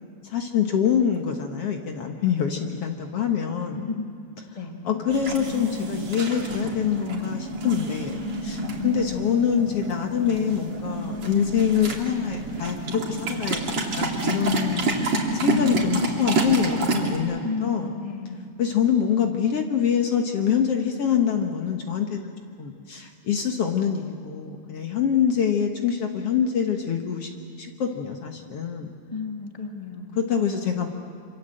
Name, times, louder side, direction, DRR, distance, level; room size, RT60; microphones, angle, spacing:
voice 1, 0.2-3.9 4.8-13.6 14.0-14.9 15.3-18.0 18.6-22.3 22.6-27.3 27.6-28.9 30.2-30.9, left 8 dB, 60° left, 3 dB, 2.2 m, -25 dB
voice 2, 3.7-4.1 4.5-5.0 8.7-9.3 17.4-18.4 29.1-30.1, left 4 dB, 15° left, 2 dB, 1.8 m, -33 dB
sound 1, 5.1-17.2, right 2 dB, 60° right, 3.8 m, -28 dB
27.0 x 25.5 x 7.8 m, 2.4 s
omnidirectional pair, 3.4 m